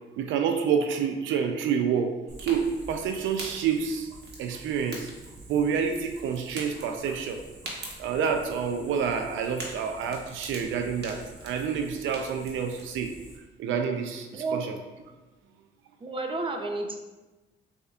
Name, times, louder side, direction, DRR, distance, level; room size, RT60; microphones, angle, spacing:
voice 1, 0.2-2.1 2.4-4.1 4.4-5.1 5.5-7.4 8.0-13.1 13.6-14.7, right 7 dB, 80° right, 5 dB, 0.4 m, -28 dB
Fire, 2.3-13.4, right 2 dB, 55° right, 1.2 m, -44 dB
voice 2, 14.3-14.6 16.0-17.0, right 3 dB, 25° right, 3 dB, 0.6 m, -31 dB
6.7 x 2.8 x 2.4 m, 1.2 s
cardioid pair, 90°, 20 cm